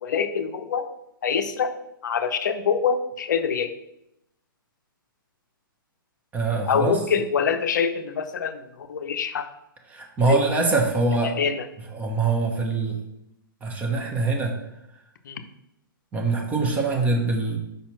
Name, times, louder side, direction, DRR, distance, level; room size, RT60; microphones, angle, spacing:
voice 1, 0.0-0.9 1.2-1.7 2.0-3.7 6.7-9.5 10.3-10.4 11.2-11.6 15.2-15.4, left 6 dB, 55° left, 9 dB, 0.7 m, -25 dB
voice 2, 6.3-7.0 9.9-11.3 11.9-13.0 13.6-14.6 16.1-17.6, right 3 dB, 10° right, 2 dB, 1.0 m, -23 dB
5.3 x 4.2 x 5.8 m, 0.84 s
figure-of-eight pair, 115°, 12 cm